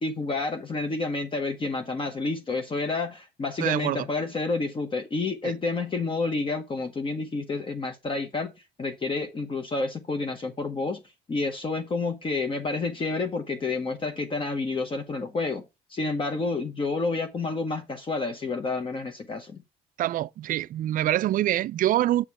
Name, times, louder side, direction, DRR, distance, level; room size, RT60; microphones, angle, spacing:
voice 1, 0.0-8.5 8.8-11.0 11.3-15.6 15.9-19.6, left 3 dB, 30° left, 1.1 m, -29 dB
voice 2, 3.6-4.1 5.4-5.5 20.0-22.2, right 13 dB, 55° right, 0.4 m, -25 dB
7.3 x 5.0 x 4.8 m
cardioid pair, 110°, 17 cm